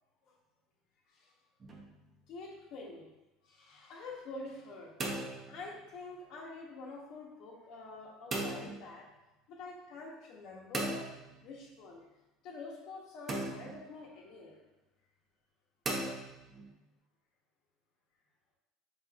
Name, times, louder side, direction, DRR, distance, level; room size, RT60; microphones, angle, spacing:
sound 1, 1.6-2.1 4.7-6.0 8.3-8.9 10.7-11.7 13.3-14.0 15.9-16.7, right 2 dB, 35° right, 0.8 m, -38 dB
voice 1, 2.3-3.1 3.4-4.9 5.5-9.1 9.5-11.1 11.4-12.0 12.4-14.6, left 3 dB, 65° left, -2 dB, 1.0 m, -47 dB
4.6 x 3.4 x 2.4 m, 1.0 s
supercardioid pair, 95°, 0 cm